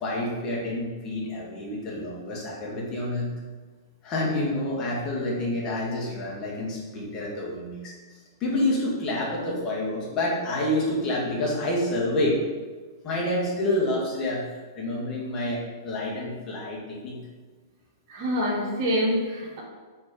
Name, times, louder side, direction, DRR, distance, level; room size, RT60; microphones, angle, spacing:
voice 1, 0.0-3.3 4.0-7.9 8.4-12.4 13.0-14.4 14.8-17.2, left 1 dB, 30° left, -5 dB, 1.9 m, -28 dB
voice 2, 18.1-19.6, equal, 50° right, -3 dB, 1.8 m, -26 dB
4.5 x 4.4 x 5.0 m, 1.4 s
hypercardioid pair, 110°, 2 cm